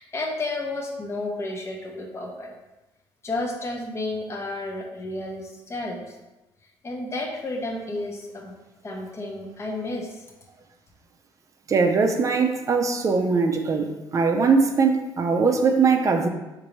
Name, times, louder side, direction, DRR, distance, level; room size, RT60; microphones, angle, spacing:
voice 1, 0.0-2.5 3.2-6.2 6.8-8.5 8.8-10.3, left 2 dB, 30° left, 2 dB, 0.8 m, -31 dB
voice 2, 11.7-16.3, right 4 dB, 35° right, 4 dB, 0.5 m, -21 dB
3.9 x 2.6 x 3.0 m, 1.0 s
supercardioid pair, 85°, 9 cm